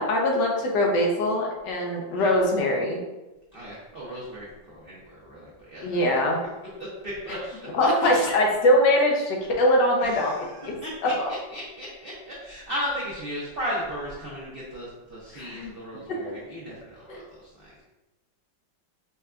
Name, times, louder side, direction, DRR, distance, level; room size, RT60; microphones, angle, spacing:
voice 1, 0.0-3.0 5.8-6.4 7.7-10.3 10.6-10.7 11.0-11.3 15.3-15.7 16.1-16.2 17.1-17.2, left 1 dB, 75° left, 0 dB, 1.4 m, -22 dB
voice 2, 2.1-2.5 3.5-6.0 7.0-7.7 10.0-11.1 11.5-17.1 17.4-17.8, equal, 65° right, -6 dB, 0.5 m, -36 dB
5.5 x 2.2 x 2.4 m, 1.1 s
omnidirectional pair, 2.0 m